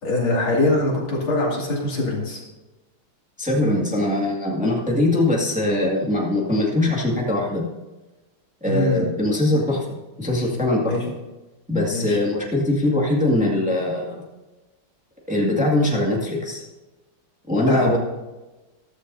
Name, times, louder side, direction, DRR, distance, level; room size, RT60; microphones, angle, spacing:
voice 1, 0.0-2.4 8.6-9.0 10.9-11.0 11.9-12.2 17.6-18.0, left 2 dB, 70° left, -3 dB, 3.4 m, -22 dB
voice 2, 3.4-7.6 8.6-10.9 11.7-14.2 15.3-16.6 17.5-18.0, left 1 dB, 5° right, -3 dB, 1.9 m, -22 dB
14.5 x 13.0 x 2.7 m, 1.1 s
omnidirectional pair, 2.3 m